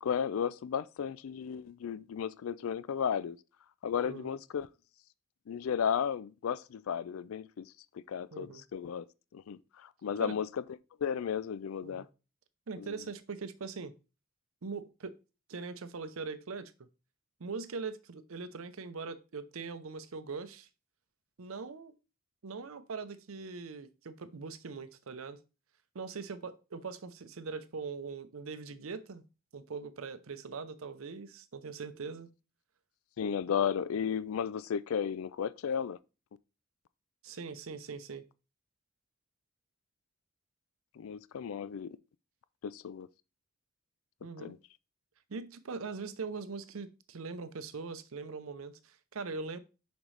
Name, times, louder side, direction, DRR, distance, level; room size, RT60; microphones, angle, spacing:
voice 1, 0.0-3.4 3.8-4.7 5.5-7.6 8.1-9.1 9.3-10.6 11.0-12.0 12.8-12.9 33.2-36.0 41.0-42.0 42.6-43.1 44.4-44.6, left 7 dB, 80° left, 0.4 m, -34 dB
voice 2, 4.0-4.4 8.3-8.6 10.2-10.4 11.8-12.1 12.7-13.9 14.6-15.1 15.5-16.7 17.4-20.7 21.4-21.9 22.4-25.4 25.9-29.3 29.5-32.3 37.2-38.2 44.2-44.5 45.3-49.6, right 4 dB, 80° right, 0.6 m, -41 dB
6.2 x 5.2 x 3.2 m
head